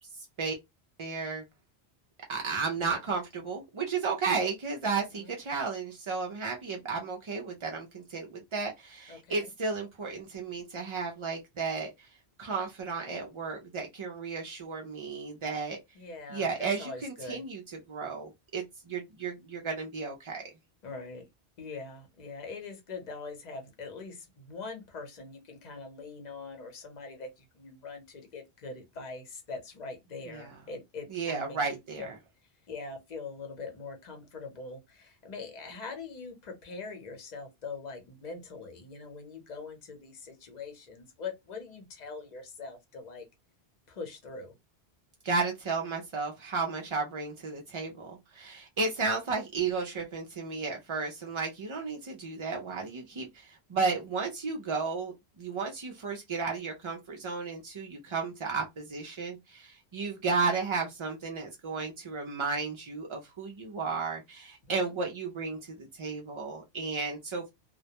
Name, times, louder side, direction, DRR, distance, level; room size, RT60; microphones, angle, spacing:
voice 1, 1.0-1.4 2.3-12.1 12.4-15.8 16.3-17.6 17.9-20.4 30.3-30.6 31.1-32.2 45.2-67.5, right 4 dB, 55° right, 0.3 m, -33 dB
voice 2, 9.1-9.5 15.9-17.4 20.8-21.2 21.6-31.6 32.0-32.1 32.7-43.2 43.9-44.5 64.7-64.9, left 4 dB, 45° left, 0.8 m, -42 dB
2.1 x 2.1 x 2.7 m
omnidirectional pair, 1.1 m